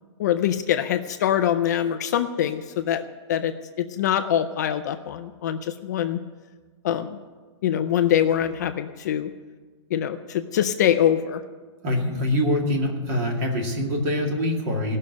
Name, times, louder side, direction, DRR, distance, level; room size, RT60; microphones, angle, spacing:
voice 1, 0.2-6.2 6.8-7.2 7.6-9.3 9.9-11.4, left 10 dB, 35° left, 9 dB, 0.5 m, -24 dB
voice 2, 11.8-15.0, left 1 dB, 30° right, 1 dB, 2.2 m, -24 dB
17.0 x 6.5 x 9.4 m, 1.4 s
hypercardioid pair, 180°, 15 cm